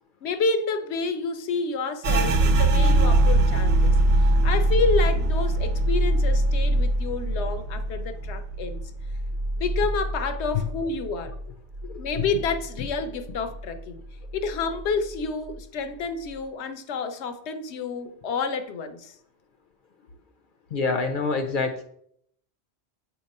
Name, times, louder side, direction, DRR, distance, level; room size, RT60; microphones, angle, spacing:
voice 1, 0.2-8.8 9.6-11.3 12.0-14.0 14.3-19.1, left 4 dB, 80° left, 9 dB, 0.9 m, -29 dB
sound 1, 2.0-11.4 11.7-13.0 13.3-13.8 14.2-14.8, right 1 dB, 80° right, 0.9 m, -23 dB
voice 2, 20.7-21.8, left 4 dB, 60° left, 6 dB, 0.6 m, -26 dB
7.5 x 2.9 x 5.2 m, 0.70 s
omnidirectional pair, 1.1 m